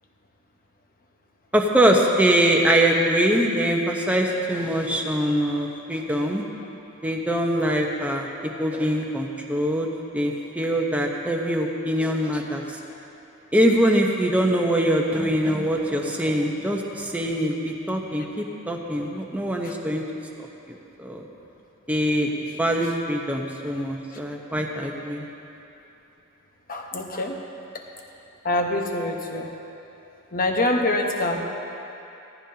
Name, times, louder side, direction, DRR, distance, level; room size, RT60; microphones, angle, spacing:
voice 1, 1.5-6.4 7.0-8.3 8.6-9.9 10.1-12.8 13.5-20.0 20.7-21.2 21.9-22.3 22.6-25.2, right 1 dB, 5° right, 0 dB, 1.0 m, -23 dB
voice 2, 26.7-27.4 28.4-29.5 30.3-31.4, left 2 dB, 40° left, 1 dB, 1.1 m, -25 dB
18.0 x 14.0 x 2.9 m, 2.9 s
head